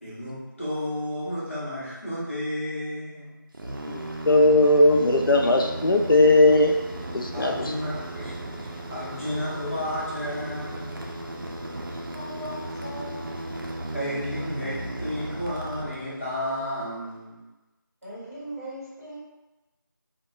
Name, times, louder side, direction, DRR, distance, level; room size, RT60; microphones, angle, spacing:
voice 1, 0.0-3.5 7.3-11.1 13.9-17.4, left 1 dB, 35° left, -8 dB, 0.8 m, -32 dB
sound 1, 3.5-16.4, right 1 dB, 70° right, 0.5 m, -35 dB
voice 2, 3.9-6.8 7.1-7.5, left 2 dB, 75° left, 2 dB, 0.4 m, -18 dB
voice 3, 12.1-13.3 18.0-19.2, equal, 40° right, -10 dB, 1.2 m, -39 dB
2.3 x 2.1 x 3.0 m, 1.1 s
figure-of-eight pair, 180°, 11 cm